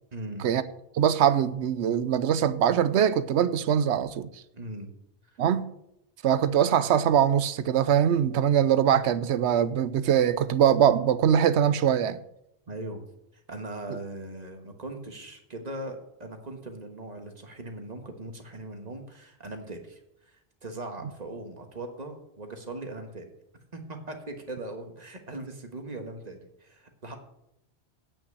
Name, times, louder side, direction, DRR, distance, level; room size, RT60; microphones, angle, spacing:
voice 1, 0.1-0.4 4.5-4.9 12.7-13.0 13.3-20.0 20.3-23.3 23.7-27.1, right 2 dB, 40° right, 1.5 m, -39 dB
voice 2, 0.9-4.3 5.4-5.7 6.2-12.2, right 9 dB, 90° right, 0.9 m, -22 dB
8.9 x 5.8 x 8.0 m
omnidirectional pair, 1.1 m